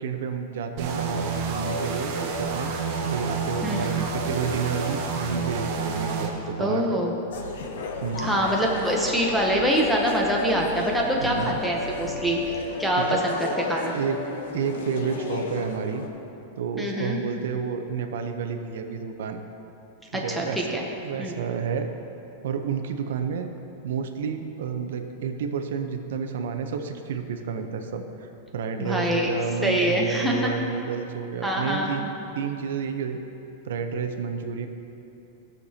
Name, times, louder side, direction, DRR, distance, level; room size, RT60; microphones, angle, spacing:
voice 1, 0.0-2.7 3.0-6.9 8.0-8.4 11.2-11.6 13.0-13.2 13.9-14.2 14.5-16.1 16.6-19.4 20.1-20.6 21.0-21.9 22.4-23.5 23.8-33.2 33.6-34.7, right 6 dB, 75° right, 6 dB, 0.7 m, -30 dB
sound 1, 0.8-6.3, right 4 dB, 40° right, 0.8 m, -29 dB
voice 2, 6.6-7.1 8.2-12.5 12.8-13.9 16.8-17.2 20.1-20.8 21.2-21.3 28.8-29.3 29.6-30.5 31.4-31.9, equal, ahead, -3 dB, 0.7 m, -24 dB
sound 2, 7.3-16.1, left 3 dB, 75° left, 0.9 m, -34 dB
16.0 x 6.6 x 2.8 m, 2.9 s
supercardioid pair, 170°, 0 cm